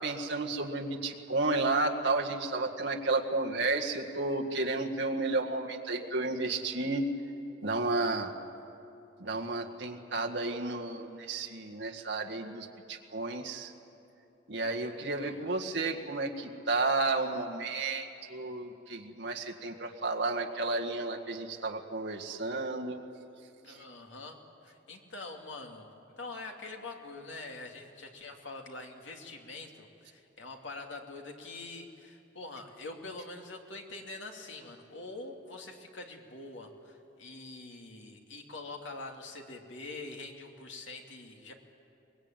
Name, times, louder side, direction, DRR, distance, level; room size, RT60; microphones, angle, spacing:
voice 1, 0.0-7.1 7.6-8.3 9.2-13.7 14.5-23.0 23.7-23.8, right 3 dB, 60° right, 2 dB, 1.8 m, -32 dB
voice 2, 14.8-15.4 23.6-41.5, left 2 dB, 70° left, 2 dB, 2.6 m, -45 dB
23.5 x 21.0 x 9.1 m, 2.8 s
head